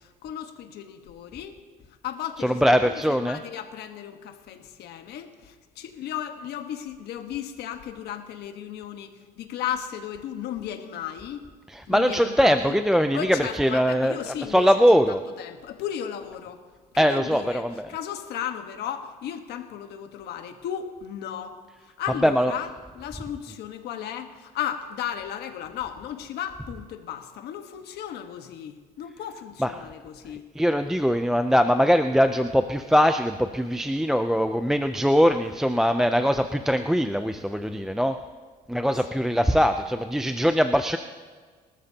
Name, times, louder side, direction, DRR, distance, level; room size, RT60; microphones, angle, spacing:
voice 1, 0.0-1.6 2.0-11.4 11.9-12.7 13.1-14.7 15.1-16.6 16.9-21.6 21.8-22.7 22.9-30.4 35.3-35.4, left 9 dB, 75° left, 6 dB, 1.4 m, -35 dB
voice 2, 2.4-3.4 11.7-15.2 17.0-17.9 22.2-22.5 29.6-29.7 30.6-38.2 38.7-41.0, equal, 5° right, 7 dB, 0.5 m, -22 dB
26.0 x 13.0 x 2.9 m, 1.5 s
cardioid pair, 110°, 17 cm